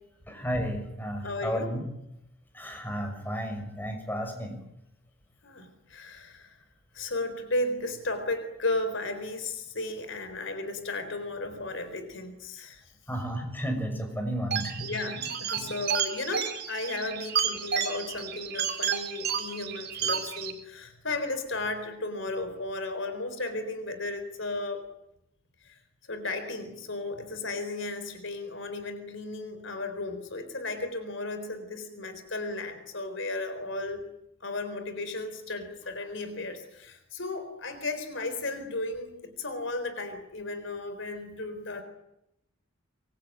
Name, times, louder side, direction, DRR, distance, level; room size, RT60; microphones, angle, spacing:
voice 1, 0.3-1.9 2.5-4.6 13.1-14.9 15.5-15.7, equal, 10° left, 5 dB, 6.1 m, -33 dB
voice 2, 1.2-1.7 5.4-6.6 6.9-12.8 14.8-24.9 25.6-25.8 26.1-34.1 34.4-41.8, left 2 dB, 65° left, 9 dB, 4.0 m, -34 dB
sound 1, 14.5-20.5, right 8 dB, 50° right, 3.7 m, -31 dB
25.0 x 23.0 x 9.3 m, 0.83 s
head